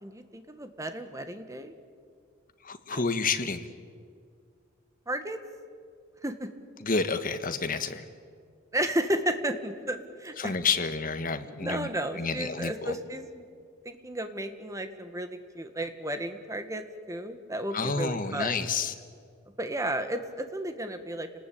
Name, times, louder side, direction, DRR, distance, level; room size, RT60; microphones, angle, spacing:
voice 1, 0.0-1.7 2.9-3.0 5.1-5.4 6.2-6.5 8.7-10.5 11.6-13.5 13.8-18.5 19.6-21.3, right 1 dB, 15° right, 8 dB, 1.7 m, -33 dB
voice 2, 2.6-3.7 6.8-8.0 10.4-11.9 12.2-12.9 17.7-18.9, left 4 dB, 45° left, 9 dB, 1.5 m, -29 dB
29.5 x 19.5 x 8.6 m, 2.1 s
head